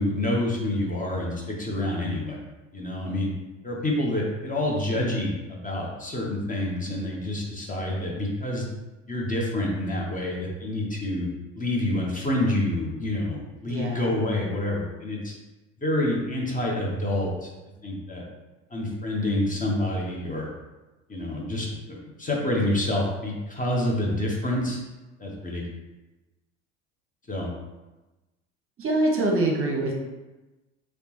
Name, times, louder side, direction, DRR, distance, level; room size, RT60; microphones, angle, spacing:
voice 1, 0.0-2.4 2.7-3.3 3.6-8.7 9.1-11.3 11.5-15.3 15.8-17.5 17.8-18.2 18.7-20.5 21.1-24.8 25.2-25.6 27.3-27.5, left 1 dB, 20° left, -2 dB, 0.9 m, -27 dB
voice 2, 13.7-14.1 28.8-29.9, right 2 dB, 35° right, 0 dB, 0.8 m, -24 dB
3.4 x 3.0 x 3.0 m, 1.1 s
hypercardioid pair, 75°, 38 cm